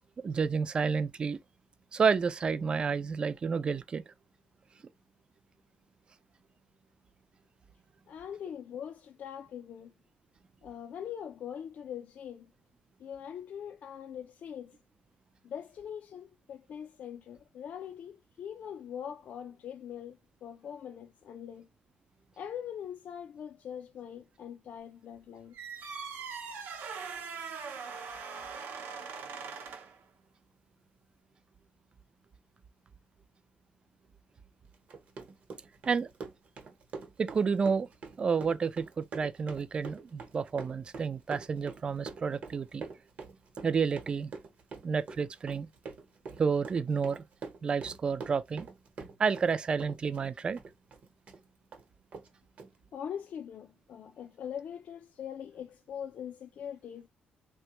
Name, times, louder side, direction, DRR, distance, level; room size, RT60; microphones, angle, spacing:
voice 1, 0.2-1.4 1.9-4.0 35.9-36.1 37.2-37.9 38.2-42.8 43.6-44.3 44.8-45.7 46.4-47.2 47.6-48.7 49.2-50.6, right 5 dB, 30° right, 0.3 m, -30 dB
voice 2, 8.1-9.9 10.6-12.5 13.0-14.8 15.4-21.7 22.4-25.5 52.9-57.1, left 8 dB, 50° left, 0.4 m, -42 dB
sound 1, 25.5-30.0, right 5 dB, 75° right, 0.7 m, -41 dB
Run, 34.7-49.5 49.8-51.4 51.7-51.8 52.1-52.3 52.6-52.7, right 4 dB, 45° right, 0.9 m, -45 dB
3.3 x 2.2 x 2.9 m
cardioid pair, 145°, 3 cm